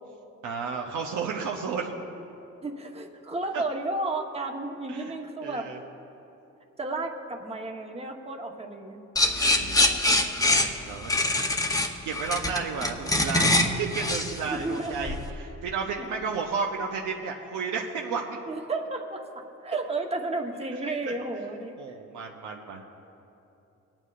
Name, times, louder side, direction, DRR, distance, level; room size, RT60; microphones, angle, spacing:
voice 1, 0.4-2.0 3.5-3.6 4.9-5.1 5.4-5.8 9.5-9.8 10.4-11.1 12.0-18.4 21.0-21.1 21.8-22.8, right 5 dB, 75° right, 0 dB, 0.8 m, -32 dB
voice 2, 2.6-5.7 6.8-9.0 14.5-15.1 18.5-21.7, right 2 dB, 20° right, 2 dB, 1.1 m, -32 dB
sound 1, 9.2-15.3, left 2 dB, 10° left, 0.8 m, -24 dB
21.5 x 8.9 x 2.5 m, 2.9 s
cardioid pair, 90°, 30 cm